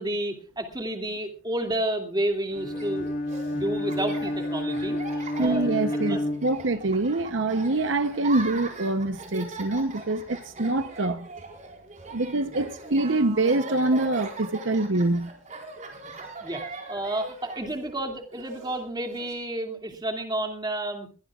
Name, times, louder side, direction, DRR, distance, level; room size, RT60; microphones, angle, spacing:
voice 1, 0.0-3.1 3.5-6.2 12.5-12.6 16.0-16.1 16.4-16.6 16.9-21.1, right 1 dB, 20° right, 2.5 m, -31 dB
Bowed string instrument, 2.5-7.1, left 1 dB, 45° left, 1.6 m, -30 dB
Laughter, 2.6-19.3, right 3 dB, 35° right, 4.4 m, -41 dB
voice 2, 5.4-11.3 12.1-15.3, right 2 dB, 65° right, 0.9 m, -25 dB
22.0 x 18.0 x 2.4 m
head